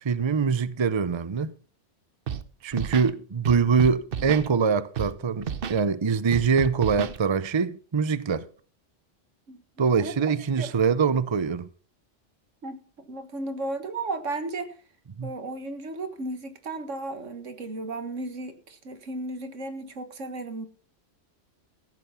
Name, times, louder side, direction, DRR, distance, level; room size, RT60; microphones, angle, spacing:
voice 1, 0.0-1.5 2.6-8.5 9.8-11.7 15.2-15.3, right 5 dB, 30° right, 0.6 m, -24 dB
Scratching (performance technique), 2.3-2.4 2.7-3.1 3.4-4.5 5.0-5.1 5.4-5.8 6.3-7.2, right 7 dB, 55° right, 0.9 m, -31 dB
voice 2, 10.0-10.3 10.6-10.7 12.6-14.7 15.2-20.7, right 2 dB, 80° right, 1.9 m, -34 dB
15.0 x 8.5 x 5.6 m
omnidirectional pair, 1.3 m